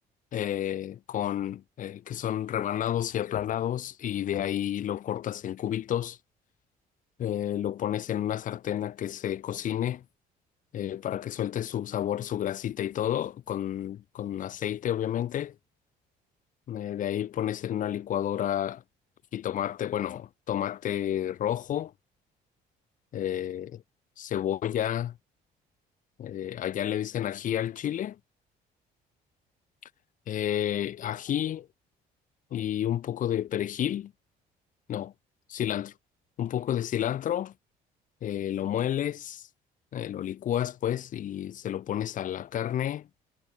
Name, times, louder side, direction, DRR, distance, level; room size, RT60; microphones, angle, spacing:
voice 1, 0.3-6.2 7.2-10.0 10.7-15.5 16.7-18.8 19.3-21.9 23.1-23.8 24.2-25.2 26.2-28.2 30.3-31.7 32.5-34.1 34.9-35.1 35.5-35.9 36.4-37.5 38.2-39.5 39.9-43.1, left 11 dB, 50° left, 0.8 m, -30 dB
cardioid pair, 110°, 17 cm